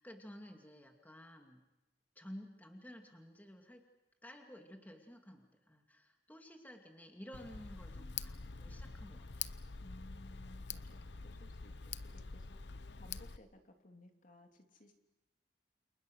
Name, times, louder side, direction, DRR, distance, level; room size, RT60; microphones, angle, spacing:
voice 1, 0.0-1.6 2.2-3.8 4.2-9.5, equal, 10° left, 3 dB, 2.6 m, -53 dB
Tick, 7.3-13.4, left 6 dB, 80° left, 0.8 m, -46 dB
voice 2, 7.9-8.4 9.8-14.9, left 1 dB, 50° left, 3 dB, 3.1 m, -59 dB
29.0 x 28.5 x 6.6 m, 1.0 s
head